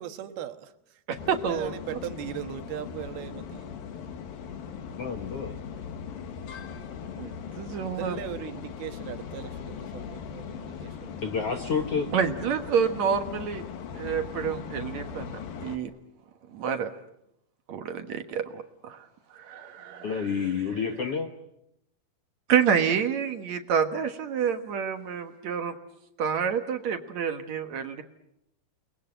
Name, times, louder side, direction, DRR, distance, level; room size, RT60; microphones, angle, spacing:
voice 1, 0.0-1.0 1.3-3.8 4.9-5.2 5.4-6.1 6.5-11.2, right 11 dB, 80° right, 8 dB, 3.3 m, -40 dB
voice 2, 1.1-1.7 7.2-8.2 12.1-13.6 13.9-15.9 16.5-16.9 17.7-19.1 19.3-20.3 22.5-25.7 26.2-28.0, right 7 dB, 60° right, 7 dB, 2.2 m, -28 dB
sound 1, 1.2-15.8, left 7 dB, 70° left, 3.4 m, -39 dB
voice 3, 5.0-5.6 11.2-12.1 20.0-21.3, left 6 dB, 55° left, 5 dB, 1.8 m, -29 dB
29.5 x 21.5 x 9.0 m, 0.84 s
omnidirectional pair, 4.4 m